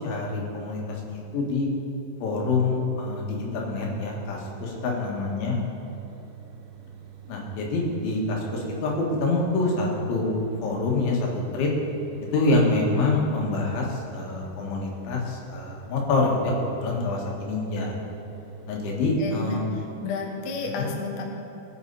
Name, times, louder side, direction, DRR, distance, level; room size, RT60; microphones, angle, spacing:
voice 1, 0.0-1.7 2.2-5.6 7.3-11.7 12.2-17.9 18.7-19.6 20.8-20.9, left 2 dB, 90° left, -2 dB, 4.3 m, -26 dB
sound 1, 4.1-19.5, right 9 dB, 80° right, 1.9 m, -46 dB
voice 2, 19.2-19.6 20.0-21.3, left 4 dB, 70° left, 1 dB, 1.6 m, -31 dB
20.0 x 8.3 x 4.2 m, 3.0 s
omnidirectional pair, 5.2 m